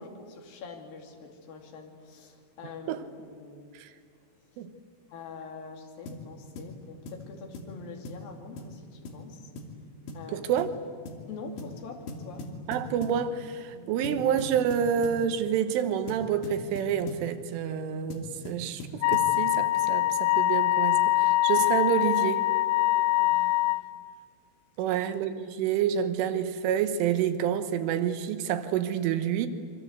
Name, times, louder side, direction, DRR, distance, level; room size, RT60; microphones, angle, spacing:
voice 1, 0.0-3.7 4.5-4.6 5.1-9.5 10.1-10.5 11.3-12.5 13.7-14.1 23.2-23.6 24.8-24.9, left 4 dB, 55° left, 2 dB, 4.0 m, -45 dB
sound 1, 6.1-6.3 6.6-6.7 7.1-7.3 7.5-7.7 8.1-8.3 8.6-8.7 9.1-9.2 9.6-9.8 10.1-10.3 10.6-10.8 11.1-11.2 11.6-11.8 12.1-13.2 14.0-15.2 16.1-17.3 18.1-19.4, left 1 dB, 70° left, 4.8 m, -40 dB
voice 2, 10.3-10.7 12.7-22.5 24.8-29.5, right 8 dB, 90° right, 10 dB, 3.7 m, -28 dB
Wind instrument woodwind instrument, 19.0-23.8, left 17 dB, 90° left, 3.4 m, -24 dB
27.5 x 24.0 x 8.1 m, 2.1 s
omnidirectional pair, 5.5 m